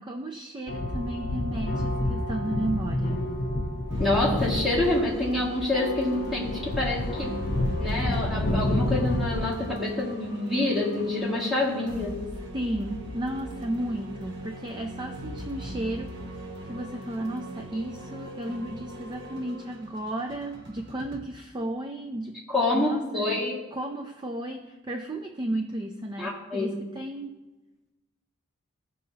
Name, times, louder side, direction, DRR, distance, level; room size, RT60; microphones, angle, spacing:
voice 1, 0.0-3.2 12.5-22.5 22.7-23.4 23.7-27.4, right 1 dB, 20° right, 4 dB, 0.4 m, -33 dB
sound 1, 0.7-9.6, left 1 dB, 45° left, 0.8 m, -29 dB
sound 2, 3.9-21.2, right 1 dB, 60° right, 1.1 m, -40 dB
voice 2, 4.0-12.2 22.5-23.6 26.2-26.8, left 2 dB, ahead, -6 dB, 2.0 m, -27 dB
16.0 x 5.4 x 2.8 m, 1.1 s
head